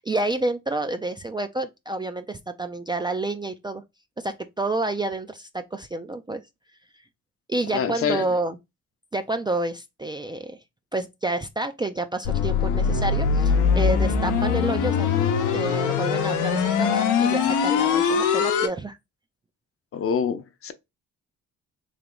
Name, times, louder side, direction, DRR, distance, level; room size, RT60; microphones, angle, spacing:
voice 1, 0.0-3.8 4.2-6.4 7.5-8.6 9.1-10.6 10.9-15.1 15.5-19.0, right 2 dB, 15° right, 0.3 m, -29 dB
voice 2, 7.7-8.3 19.9-20.7, left 7 dB, 50° left, 0.7 m, -26 dB
sound 1, 12.2-18.7, left 6 dB, 85° left, 0.8 m, -22 dB
3.3 x 2.8 x 3.8 m
cardioid pair, 90°, 30 cm